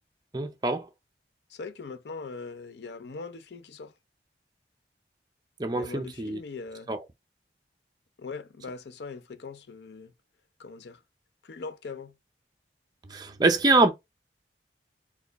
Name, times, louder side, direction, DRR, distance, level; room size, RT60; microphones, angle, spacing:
voice 1, 0.3-0.9 5.6-6.4 6.9-7.0 13.1-13.9, right 2 dB, 20° right, 0.5 m, -24 dB
voice 2, 1.5-3.9 5.7-6.9 8.2-10.1 10.6-11.0 11.4-12.1, left 4 dB, 70° left, 0.5 m, -41 dB
4.3 x 2.3 x 4.0 m
head